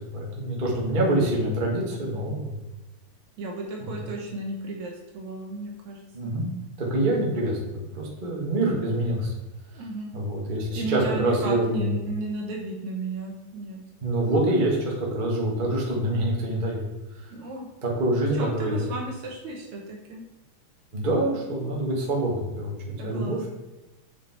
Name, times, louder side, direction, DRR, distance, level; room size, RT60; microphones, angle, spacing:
voice 1, 0.0-2.6 3.8-3.9 6.1-6.5 6.8-9.3 10.1-11.9 14.0-16.9 17.8-18.9 20.9-23.5, right 1 dB, 30° right, -3 dB, 0.9 m, -26 dB
voice 2, 3.4-6.3 9.8-10.1 10.8-13.8 17.3-17.7 18.3-20.2 23.0-23.5, right 3 dB, 65° right, 0 dB, 2.2 m, -34 dB
7.5 x 5.9 x 4.3 m, 1.0 s
omnidirectional pair, 3.9 m